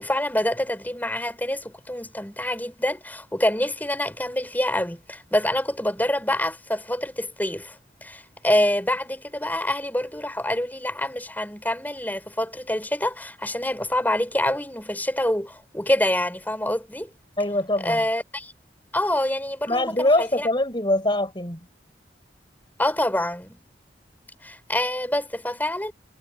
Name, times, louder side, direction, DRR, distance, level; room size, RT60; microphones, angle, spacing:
voice 1, 0.0-17.1 17.8-18.5 18.9-20.5 22.8-23.6 24.4-25.9, left 1 dB, 10° left, 6.1 m, -26 dB
voice 2, 17.4-18.0 19.7-21.7, left 1 dB, 25° left, 6.9 m, -23 dB
head